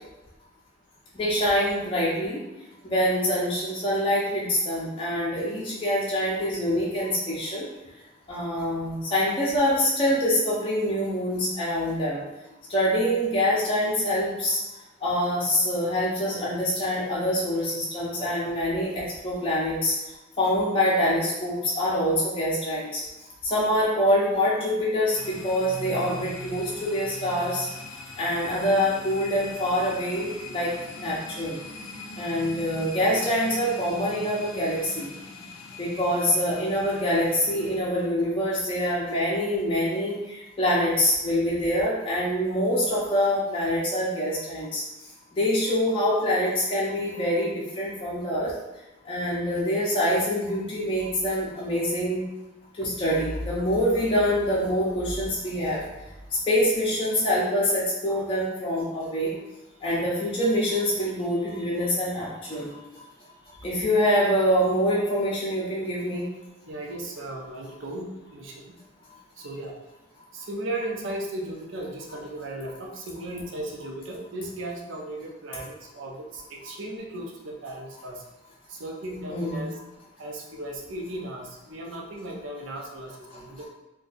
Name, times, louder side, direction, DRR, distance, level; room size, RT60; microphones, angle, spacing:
voice 1, 1.2-2.4 2.8-7.7 8.3-12.2 12.7-14.6 15.0-19.9 20.4-23.0 23.4-27.7 28.2-30.7 31.0-31.6 32.2-35.1 35.8-44.8 45.3-48.5 49.1-52.2 52.8-55.8 56.5-59.3 59.8-62.7 63.6-66.3 79.3-79.6, equal, 25° left, -6 dB, 0.5 m, -25 dB
sound 1, 25.2-37.8, left 2 dB, 90° left, 0.5 m, -40 dB
voice 2, 66.7-68.8 69.4-69.8 70.3-78.2 78.7-79.8 80.2-83.7, right 1 dB, 65° right, 0 dB, 0.6 m, -36 dB
2.6 x 2.2 x 3.9 m, 1.0 s
head